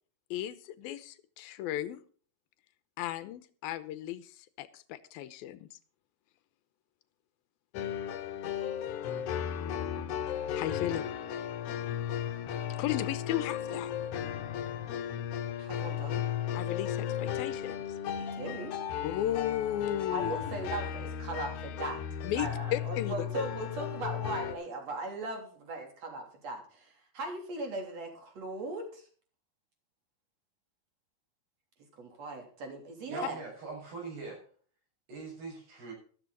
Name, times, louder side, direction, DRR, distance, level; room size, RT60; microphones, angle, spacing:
voice 1, 0.3-2.0 3.0-5.8 10.5-11.0 12.8-13.9 16.5-18.0 19.0-20.3 22.2-23.1, left 12 dB, 80° left, 14 dB, 2.6 m, -35 dB
sound 1, 7.7-24.5, left 9 dB, 65° left, 2.3 m, -35 dB
voice 2, 15.6-16.2 18.2-18.7 20.1-22.1 22.4-29.1 32.0-33.4, right 2 dB, 45° right, 3 dB, 4.1 m, -39 dB
voice 3, 33.1-34.4 35.1-35.9, right 4 dB, 85° right, 0 dB, 8.8 m, -42 dB
13.5 x 13.0 x 4.0 m, 0.43 s
omnidirectional pair, 4.5 m